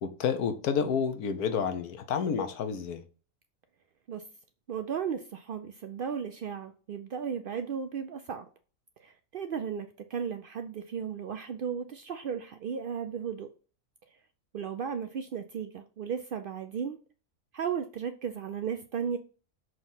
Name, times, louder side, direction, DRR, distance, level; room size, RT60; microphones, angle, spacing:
voice 1, 0.0-3.0, left 6 dB, 85° left, 1.3 m, -29 dB
voice 2, 4.7-8.5 9.0-13.5 14.5-17.0 17.5-19.2, right 7 dB, 85° right, 0.4 m, -35 dB
6.4 x 3.0 x 5.6 m
omnidirectional pair, 1.5 m